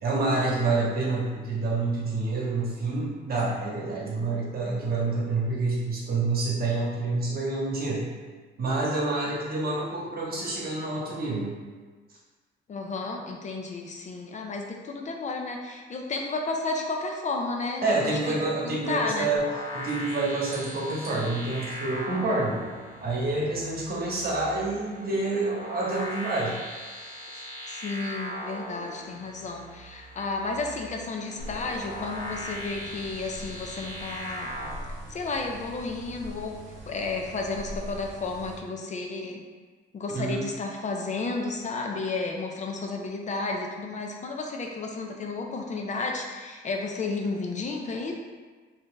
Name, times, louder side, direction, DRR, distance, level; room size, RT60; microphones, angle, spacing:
voice 1, 0.0-8.1 8.6-11.6 17.8-19.5 19.7-22.6 23.0-26.5 40.1-40.4, right 3 dB, 50° right, -4 dB, 1.0 m, -28 dB
voice 2, 12.7-18.4 18.6-19.3 27.6-34.5 35.1-36.6 36.9-39.4 39.9-48.1, left 3 dB, 40° left, 1 dB, 0.4 m, -32 dB
sound 1, 19.4-34.7, equal, 70° left, 1.0 m, -39 dB
sound 2, 31.4-38.6, right 1 dB, 75° right, 0.6 m, -43 dB
2.7 x 2.4 x 3.6 m, 1.4 s
cardioid pair, 90°, 20 cm